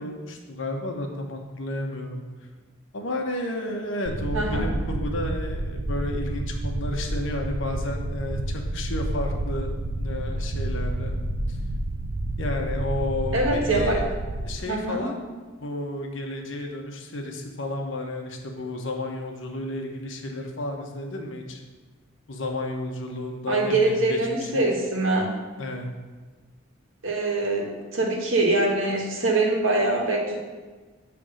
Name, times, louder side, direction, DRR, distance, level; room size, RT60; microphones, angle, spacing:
voice 1, 0.0-2.2 2.9-9.7 10.0-11.1 11.5-11.6 12.4-14.1 14.4-15.2 15.6-21.6 22.3-24.6 25.6-25.9, left 1 dB, 70° left, 2 dB, 1.0 m, -32 dB
sound 1, 4.1-14.6, right 1 dB, 50° right, 0.4 m, -29 dB
voice 2, 4.3-4.7 13.3-14.0 14.6-15.1 23.5-25.3 27.0-30.4, right 2 dB, 80° right, -1 dB, 1.5 m, -24 dB
7.7 x 3.4 x 6.3 m, 1.3 s
head